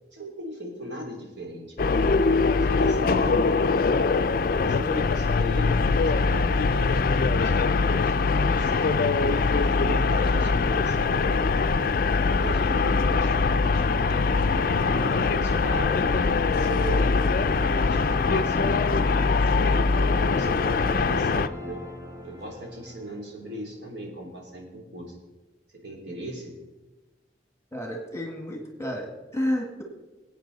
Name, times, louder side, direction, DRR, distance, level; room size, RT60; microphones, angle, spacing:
voice 1, 0.1-2.0 2.6-3.7 4.5-5.8 6.1-8.8 9.5-11.9 12.4-14.7 15.0-17.1 17.5-18.7 19.2-21.8 22.2-25.1 25.7-26.5, right 1 dB, 75° right, -1 dB, 3.2 m, -38 dB
sound 1, 1.8-21.5, left 4 dB, 50° left, 0.4 m, -22 dB
sound 2, 14.5-23.7, equal, 20° right, 1.1 m, -39 dB
voice 2, 27.7-29.8, left 1 dB, 15° left, 2 dB, 1.6 m, -31 dB
19.5 x 8.6 x 4.0 m, 1.2 s
head